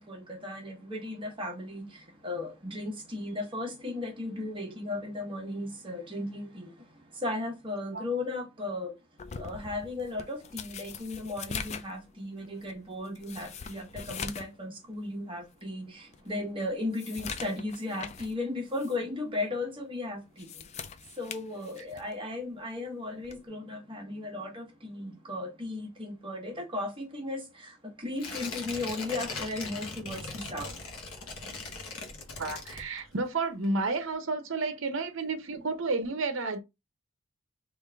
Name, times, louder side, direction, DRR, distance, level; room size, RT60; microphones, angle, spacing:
voice 1, 0.1-1.8 2.2-6.7 7.2-8.9 9.4-20.4 21.2-27.4 28.0-30.7, left 2 dB, 25° right, 1.1 m, -36 dB
sound 1, 9.2-14.6 14.9-15.0 15.6-15.7 16.1-18.4 18.7-19.0 20.2-22.2 23.2-23.5, left 6 dB, 30° left, 0.3 m, -42 dB
Tearing, 28.2-33.3 33.6-33.7, left 3 dB, 85° left, 1.0 m, -39 dB
voice 2, 32.4-36.6, right 3 dB, 60° right, 0.7 m, -31 dB
3.5 x 2.5 x 3.4 m
head